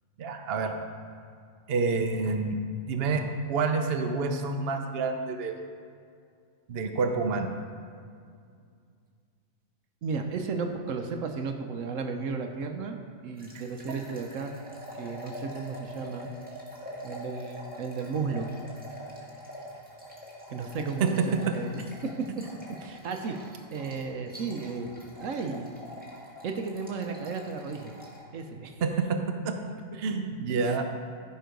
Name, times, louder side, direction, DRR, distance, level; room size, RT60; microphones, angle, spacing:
voice 1, 0.2-0.7 1.7-2.6 2.9-5.5 6.7-7.5 21.0-21.5 28.8-29.6 30.0-30.8, right 4 dB, 55° right, 5 dB, 0.9 m, -28 dB
voice 2, 10.0-14.5 14.9-16.3 17.0-18.5 20.5-22.4 22.8-24.9 25.2-25.7 26.4-27.9 28.3-28.8, right 4 dB, 75° right, 5 dB, 1.1 m, -34 dB
sound 1, 13.4-28.2, equal, 5° right, 1.8 m, -45 dB
14.0 x 5.6 x 5.2 m, 2.2 s
omnidirectional pair, 1.4 m